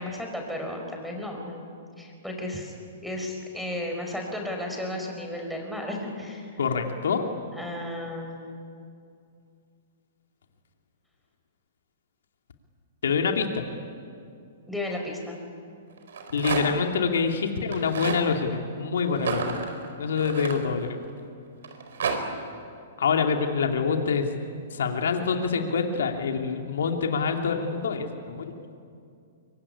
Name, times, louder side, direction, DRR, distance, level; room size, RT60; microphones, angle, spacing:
voice 1, 0.0-1.7 2.0-2.7 3.0-6.5 7.5-8.4 14.7-15.3, left 1 dB, ahead, 0 dB, 4.9 m, -34 dB
voice 2, 6.6-7.3 13.0-13.6 16.3-19.6 20.0-21.0 23.0-24.3 24.7-28.5, left 5 dB, 85° left, 3 dB, 2.6 m, -26 dB
Rattle, 16.0-16.9 17.6-18.2 19.1-21.1 21.6-22.2, right 5 dB, 80° right, 4.8 m, -31 dB
24.5 x 24.0 x 10.0 m, 2.4 s
hypercardioid pair, 150°, 0 cm